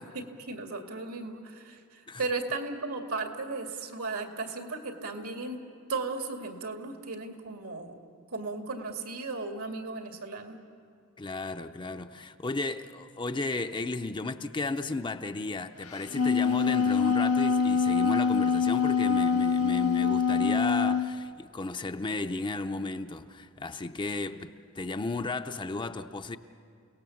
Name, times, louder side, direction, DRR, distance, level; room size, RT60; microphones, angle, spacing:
voice 1, 0.0-5.6 5.9-8.0 8.3-10.6, right 3 dB, 80° right, 2.2 m, -36 dB
voice 2, 11.2-26.4, left 3 dB, 20° left, 0.5 m, -34 dB
Wind instrument woodwind instrument, 15.9-21.1, left 6 dB, 80° left, 0.8 m, -25 dB
29.0 x 18.0 x 7.1 m
head